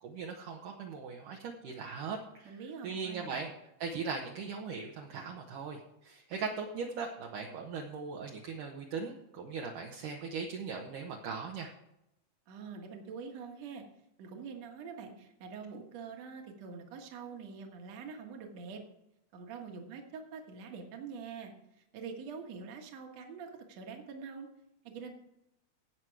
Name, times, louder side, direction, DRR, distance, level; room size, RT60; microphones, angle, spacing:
voice 1, 0.0-2.5 2.8-3.5 3.8-11.7, right 5 dB, 70° right, 0 dB, 2.3 m, -39 dB
voice 2, 2.5-3.4 12.5-13.8 14.2-18.8 19.3-24.5 24.8-25.1, right 5 dB, 55° right, 3 dB, 2.3 m, -45 dB
17.5 x 6.2 x 4.7 m, 0.83 s
omnidirectional pair, 4.4 m